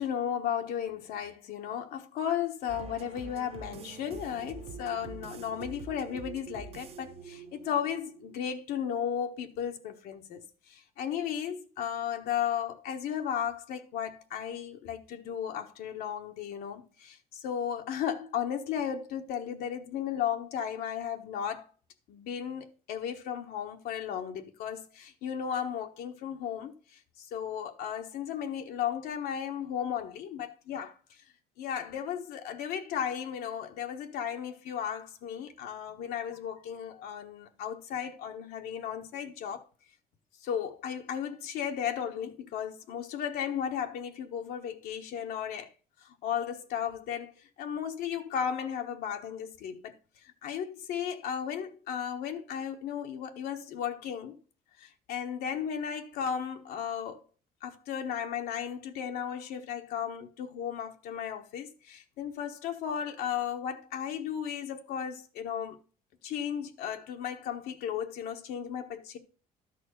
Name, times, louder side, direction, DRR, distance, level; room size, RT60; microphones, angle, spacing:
voice 1, 0.0-21.7 22.1-31.2 31.6-39.6 40.4-45.7 46.0-49.9 50.4-54.4 54.8-57.2 57.6-65.8 66.2-69.2, left 8 dB, 75° left, 1.2 m, -35 dB
sound 1, 2.7-8.3, right 5 dB, 40° right, 1.0 m, -45 dB
12.5 x 4.3 x 6.6 m
cardioid pair, 140°, 16 cm